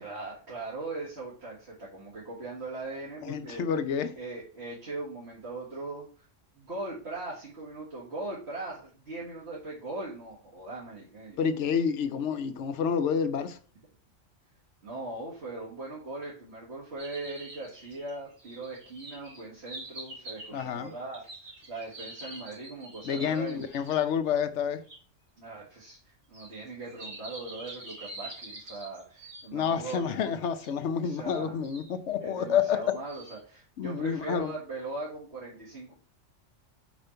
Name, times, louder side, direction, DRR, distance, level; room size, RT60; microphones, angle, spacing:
voice 1, 0.0-3.6 4.2-6.3 6.6-11.8 14.8-23.7 25.4-30.4 31.0-31.6 32.2-35.9, right 2 dB, 55° right, 2.0 m, -40 dB
voice 2, 3.2-4.1 11.4-13.6 20.5-20.9 23.0-24.8 29.5-33.0 33.8-34.5, left 7 dB, 70° left, 1.0 m, -29 dB
sound 1, 17.0-24.0 24.9-25.0 26.3-30.0 30.6-30.7 31.3-31.9 32.6-33.4, right 2 dB, 80° right, 2.7 m, -46 dB
5.3 x 5.1 x 4.3 m
omnidirectional pair, 1.3 m